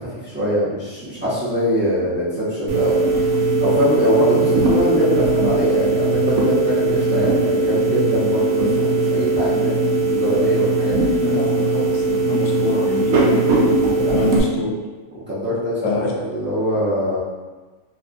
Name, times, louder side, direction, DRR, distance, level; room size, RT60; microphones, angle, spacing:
voice 1, 0.0-9.7 10.1-11.4 14.0-14.4 15.3-17.2, equal, 15° right, -11 dB, 0.4 m, -23 dB
sound 1, 2.7-14.4, right 2 dB, 70° right, 0.9 m, -19 dB
voice 2, 11.2-13.4 14.1-14.8 15.8-16.1, left 3 dB, 70° left, -1 dB, 1.0 m, -25 dB
2.7 x 2.6 x 2.5 m, 1.3 s
omnidirectional pair, 1.6 m